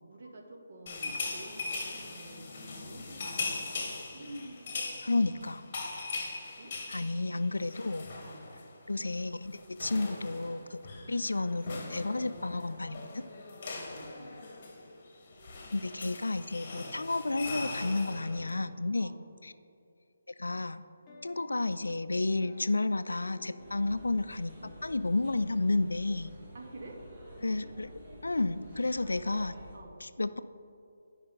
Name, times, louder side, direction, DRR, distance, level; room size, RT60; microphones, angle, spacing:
voice 1, 0.1-5.1 5.4-5.5 6.5-6.7 8.2-8.5 11.0-11.2 13.7-14.4 19.0-19.2 26.5-27.0 27.3-27.8 29.7-29.9, right 1 dB, 50° right, 1 dB, 1.2 m, -49 dB
sound 1, 0.9-8.7 9.0-9.2 9.4-18.5, left 3 dB, 40° left, 1.3 m, -40 dB
voice 2, 5.0-5.6 6.9-8.1 8.9-10.8 11.1-13.2 15.7-19.1 19.4-19.5 20.4-20.8 21.2-26.3 27.4-27.9 28.2-29.5 30.0-30.4, left 2 dB, 80° left, 13 dB, 0.3 m, -31 dB
sound 2, 20.8-22.1 22.4-24.2 24.5-26.2 26.6-28.5 29.0-29.6, left 2 dB, 20° left, 0.9 m, -54 dB
sound 3, 23.6-29.8, equal, 30° right, 1.6 m, -50 dB
10.0 x 5.4 x 3.9 m, 2.6 s
figure-of-eight pair, 155°, 0 cm